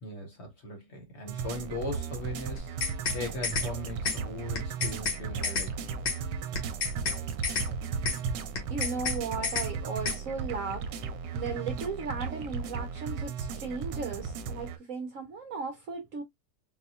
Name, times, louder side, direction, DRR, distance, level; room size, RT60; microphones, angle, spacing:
voice 1, 0.0-5.9, left 2 dB, 45° left, 1.1 m, -39 dB
sound 1, 1.3-14.8, right 6 dB, 80° right, 1.2 m, -35 dB
sound 2, 2.6-3.2 3.4-3.7 4.1-4.2 4.6-5.2 5.4-5.7 6.1-6.2 6.6-7.2 7.4-7.7 8.1-8.2 8.6-9.2 9.4-9.7 10.1-10.2, left 5 dB, 75° left, 1.8 m, -30 dB
voice 2, 8.7-10.9 11.3-16.2, right 4 dB, 60° right, 0.9 m, -36 dB
4.0 x 2.2 x 2.8 m
omnidirectional pair, 1.9 m